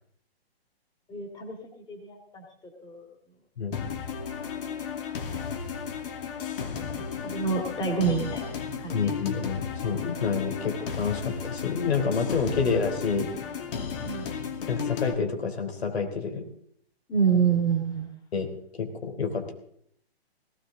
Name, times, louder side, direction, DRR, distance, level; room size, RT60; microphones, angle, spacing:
voice 1, 1.1-1.6 1.9-2.4 2.8-3.1 5.3-5.4 6.9-9.0 9.3-9.4 12.6-12.7 14.0-14.3 17.1-18.1, right 6 dB, 15° left, 2 dB, 2.1 m, -28 dB
sound 1, 3.7-15.1, left 6 dB, 60° left, 2.4 m, -34 dB
voice 2, 8.9-13.3 14.7-16.4 18.3-18.5 18.7-19.5, left 5 dB, 80° left, 5 dB, 3.6 m, -28 dB
18.0 x 15.5 x 3.9 m, 0.67 s
hypercardioid pair, 145°, 31 cm